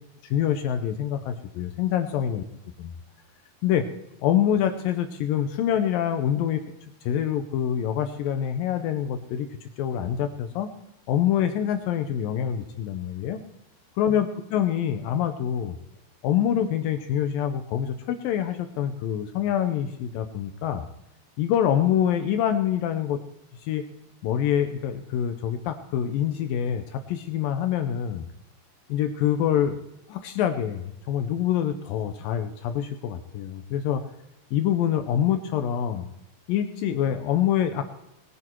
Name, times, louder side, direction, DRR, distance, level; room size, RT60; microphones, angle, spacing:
voice 1, 0.2-2.4 2.8-3.0 3.6-3.9 4.2-6.6 7.0-10.7 11.1-13.4 14.0-15.8 16.2-20.9 21.4-23.2 23.6-23.8 24.2-28.3 28.9-29.8 30.1-34.0 34.5-36.1 36.5-37.8, left 10 dB, 80° left, 8 dB, 2.1 m, -25 dB
20.5 x 9.4 x 4.5 m, 0.89 s
omnidirectional pair, 5.0 m